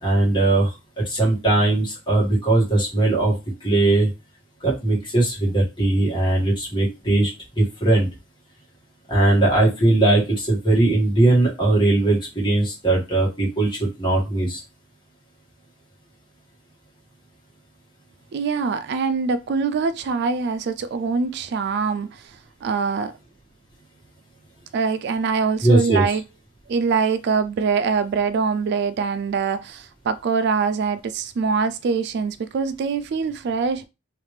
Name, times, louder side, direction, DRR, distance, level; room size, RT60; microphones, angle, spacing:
voice 1, 0.0-3.3 3.6-4.1 4.6-7.3 7.6-8.1 9.1-14.6 25.6-26.0, right 2 dB, 25° left, 1.8 m, -19 dB
voice 2, 18.3-23.1 24.7-26.2 26.7-33.8, right 5 dB, 60° right, 0.3 m, -23 dB
3.3 x 3.1 x 3.2 m
head